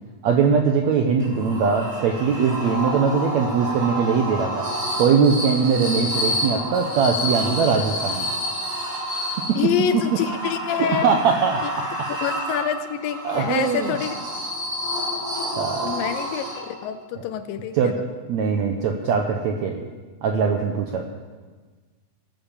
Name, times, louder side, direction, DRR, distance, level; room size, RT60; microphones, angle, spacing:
voice 1, 0.2-4.6 5.0-8.3 9.5-9.6 10.8-11.6 13.2-13.9 15.6-15.9 17.7-17.9 18.3-19.9 20.2-21.0, right 6 dB, 75° right, 3 dB, 1.6 m, -21 dB
sound 1, 1.2-16.9, equal, 25° right, 4.3 m, -29 dB
voice 2, 9.6-11.2 12.2-14.2 15.8-18.0, left 9 dB, 80° left, 11 dB, 2.1 m, -26 dB
18.0 x 9.2 x 7.3 m, 1.4 s
omnidirectional pair, 4.3 m